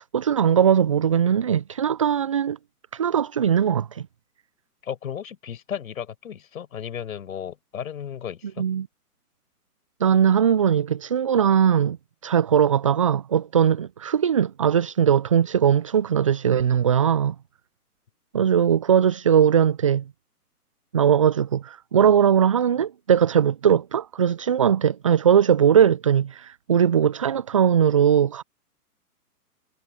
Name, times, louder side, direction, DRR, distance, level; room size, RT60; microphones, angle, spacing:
voice 1, 0.0-2.6 2.9-4.0 8.6-8.9 10.0-12.0 12.2-17.4 18.3-20.0 20.9-28.4, right 8 dB, 25° right, 0.4 m, -20 dB
voice 2, 4.8-8.7, left 8 dB, 60° left, 6.2 m, -34 dB
figure-of-eight pair, 125°, 46 cm